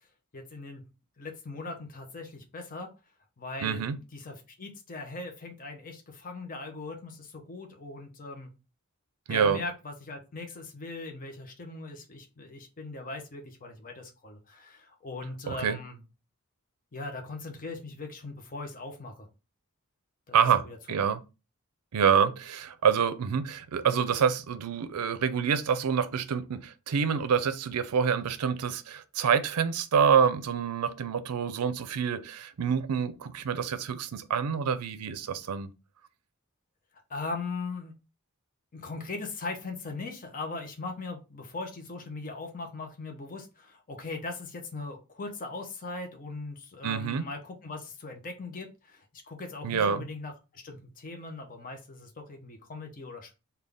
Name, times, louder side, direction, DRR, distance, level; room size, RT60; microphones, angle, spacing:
voice 1, 0.3-0.8 1.2-2.9 3.4-3.8 4.1-8.5 9.3-16.0 16.9-19.3 20.3-21.0 37.1-37.9 38.7-53.3, left 3 dB, 40° left, 0.6 m, -40 dB
voice 2, 3.6-4.0 9.3-9.6 15.5-15.8 20.3-21.2 21.9-35.7 46.8-47.2 49.6-50.1, right 7 dB, 90° right, 0.4 m, -27 dB
3.7 x 2.3 x 3.3 m
head